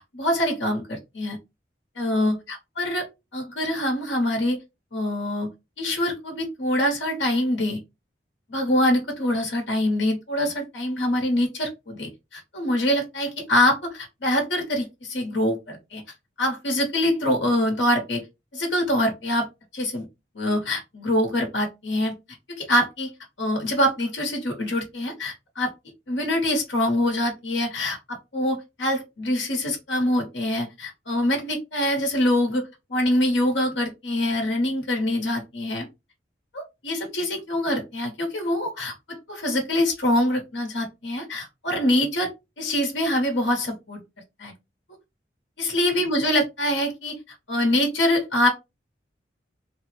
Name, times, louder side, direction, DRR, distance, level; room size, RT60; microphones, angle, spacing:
voice 1, 0.1-1.4 2.0-3.1 3.3-4.6 4.9-5.5 5.8-7.8 8.5-16.0 16.4-18.2 18.5-19.5 19.7-20.0 20.3-22.1 22.5-23.1 23.4-25.7 26.1-35.9 36.5-42.3 42.6-44.0 44.4-44.5 45.6-47.2 47.5-48.5, left 1 dB, 85° left, 2 dB, 1.0 m, -24 dB
3.3 x 2.1 x 3.1 m, 0.24 s
head